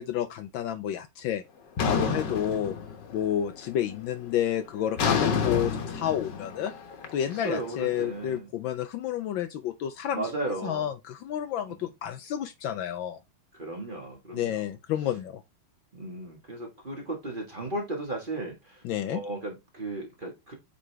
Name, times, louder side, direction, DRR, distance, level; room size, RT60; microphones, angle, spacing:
voice 1, 0.0-1.4 1.8-2.7 3.1-6.7 7.1-13.2 14.3-15.4 18.8-19.2, left 10 dB, 75° left, 1.2 m, -30 dB
sound 1, 1.8-3.3 3.7-4.1 5.0-8.0, left 5 dB, 60° left, 1.6 m, -29 dB
voice 2, 7.3-8.5 10.1-10.9 13.5-14.6 15.9-18.8 19.1-20.5, right 2 dB, 25° right, 1.4 m, -35 dB
8.2 x 3.9 x 3.3 m
omnidirectional pair, 2.4 m